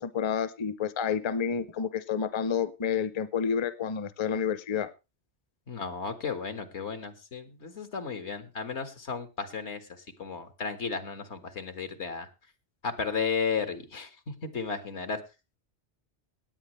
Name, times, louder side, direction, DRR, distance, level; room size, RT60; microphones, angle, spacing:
voice 1, 0.0-4.9, left 7 dB, 30° left, 14 dB, 0.6 m, -29 dB
voice 2, 5.7-12.3 12.8-15.2, left 5 dB, 80° left, 8 dB, 1.8 m, -34 dB
18.5 x 8.9 x 3.2 m, 0.27 s
omnidirectional pair, 1.2 m